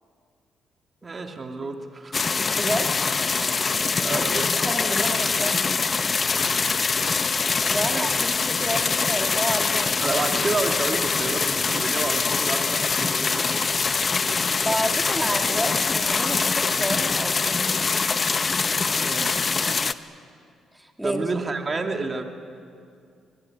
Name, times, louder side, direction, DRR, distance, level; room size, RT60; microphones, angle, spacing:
voice 1, 1.0-2.5 4.0-4.6 7.8-8.4 10.0-13.7 19.0-19.6 21.0-22.2, right 3 dB, 30° right, 4 dB, 2.3 m, -30 dB
sound 1, 2.1-19.9, left 4 dB, 35° left, 0.9 m, -24 dB
voice 2, 2.3-3.0 4.6-5.7 7.6-10.2 14.6-17.8 20.7-21.2, equal, 5° right, 3 dB, 2.7 m, -30 dB
25.0 x 21.5 x 9.9 m, 2.3 s
cardioid pair, 90°, 0 cm